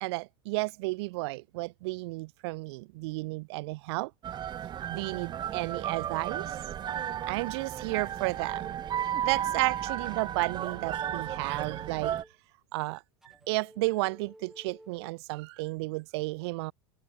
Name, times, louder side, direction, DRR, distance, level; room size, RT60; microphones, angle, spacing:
voice 1, 0.0-4.1 4.9-6.6 7.3-8.7 9.2-12.3 12.7-16.7, right 24 dB, 60° right, 0.8 m, -32 dB
sound 1, 4.2-12.2, right 10 dB, 30° right, 0.6 m, -34 dB
sound 2, 7.5-9.4 10.3-12.4 13.2-15.1, right 1 dB, 5° right, 3.1 m, -54 dB
hypercardioid pair, 95°, 15 cm